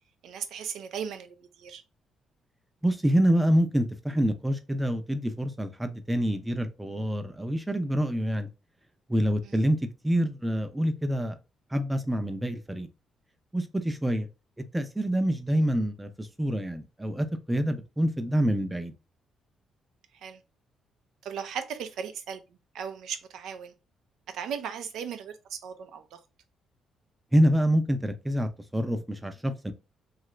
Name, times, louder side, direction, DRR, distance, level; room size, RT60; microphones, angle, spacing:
voice 1, 0.2-1.8 9.4-9.6 20.1-20.4 21.2-23.7 24.3-26.2, right 7 dB, 80° right, 0.5 m, -37 dB
voice 2, 2.8-8.5 9.1-9.8 10.0-11.4 11.7-12.9 13.5-14.3 14.7-18.9 27.3-29.7, equal, 10° right, 0.5 m, -26 dB
2.9 x 2.4 x 3.1 m
cardioid pair, 90°, 0 cm